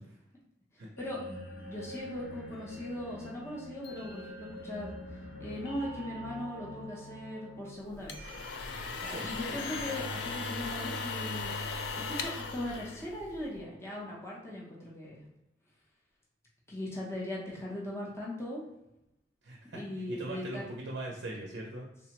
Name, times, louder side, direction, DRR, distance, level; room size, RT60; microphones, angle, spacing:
sound 1, 1.0-13.9, equal, 65° left, 0.7 m, -45 dB
voice 1, 1.0-5.0 5.4-8.3 9.0-15.2 16.7-18.6 19.7-20.7, left 1 dB, 15° left, -5 dB, 0.6 m, -39 dB
sound 2, 7.9-13.6, left 5 dB, 90° left, 0.3 m, -38 dB
voice 2, 9.1-9.6 19.4-21.9, right 1 dB, 70° right, -1 dB, 0.5 m, -41 dB
3.4 x 2.0 x 2.8 m, 0.90 s
head